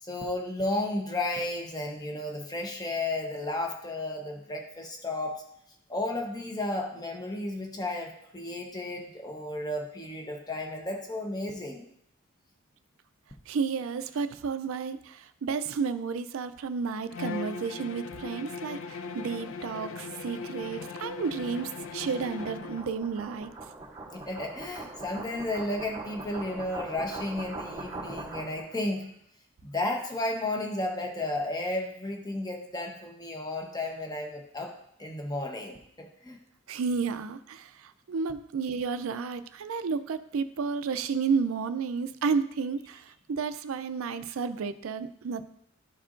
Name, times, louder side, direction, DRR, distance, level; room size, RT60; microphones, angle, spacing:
voice 1, 0.0-5.4 5.9-11.9 24.1-29.1 29.6-34.7 35.0-36.4, left 2 dB, 20° left, 2 dB, 0.9 m, -33 dB
voice 2, 13.5-23.5 36.7-45.5, right 5 dB, 75° right, 12 dB, 0.4 m, -32 dB
Bowed string instrument, 17.1-22.9, left 5 dB, 60° left, 0.4 m, -39 dB
sound 1, 18.8-28.8, right 2 dB, 20° right, 0.8 m, -43 dB
12.0 x 4.4 x 2.5 m, 0.74 s
head